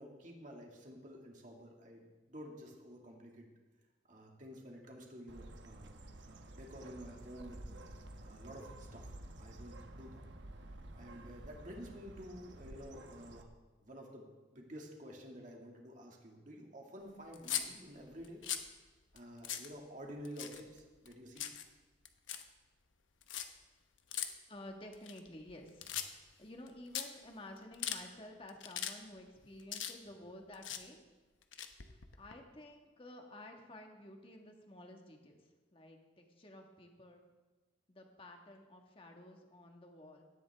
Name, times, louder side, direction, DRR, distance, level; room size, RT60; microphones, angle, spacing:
voice 1, 0.0-3.5 4.0-6.0 6.2-7.7 8.2-10.2 10.6-13.5 13.8-14.3 14.5-18.4 19.1-21.5, equal, 40° right, 0 dB, 2.1 m, -51 dB
Bird, 5.3-13.4, right 1 dB, 70° right, 1.1 m, -51 dB
sound 1, 17.3-17.7 18.2-18.7 19.2-19.3 19.4-19.7 20.2-20.8 21.1-21.6 22.0-22.4 23.2-23.4 24.1-24.3 24.9-25.5 25.8-26.3 26.7-26.8 26.9-27.0 27.6-28.0 28.5-28.9 29.2-30.2 30.5-30.8 31.4-32.3, left 10 dB, 85° left, 1.0 m, -39 dB
voice 2, 24.5-31.0 32.2-37.2 37.9-40.2, left 1 dB, 30° left, 2 dB, 1.5 m, -52 dB
18.0 x 12.5 x 3.5 m, 1.3 s
head